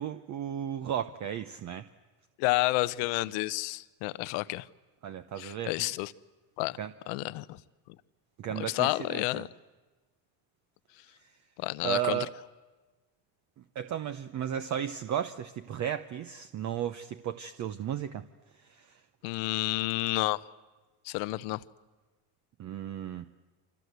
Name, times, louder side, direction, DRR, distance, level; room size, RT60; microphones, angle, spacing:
voice 1, 0.0-1.9 5.0-5.7 6.8-6.9 8.4-9.4 11.8-12.3 13.7-18.2 18.7-18.9 22.6-23.3, right 10 dB, 35° right, 0.8 m, -34 dB
voice 2, 2.4-4.7 5.4-6.1 6.6-6.8 7.1-7.6 8.5-9.5 11.6-12.2 19.2-20.4 21.0-21.6, left 20 dB, 75° left, 1.0 m, -30 dB
28.5 x 25.5 x 8.1 m
cardioid pair, 140°, 48 cm